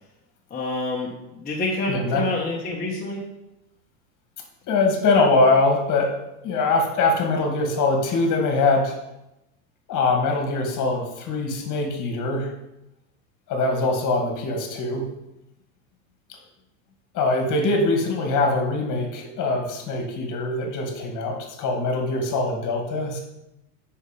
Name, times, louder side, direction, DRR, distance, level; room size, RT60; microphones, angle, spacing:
voice 1, 0.5-3.2, left 2 dB, 20° left, -4 dB, 1.5 m, -28 dB
voice 2, 1.9-2.3 4.7-6.1 6.4-9.0 9.9-12.5 13.5-15.1 16.3-16.4 17.1-23.2, left 3 dB, 40° left, 3 dB, 2.2 m, -22 dB
7.9 x 5.6 x 5.2 m, 0.89 s
hypercardioid pair, 105°, 48 cm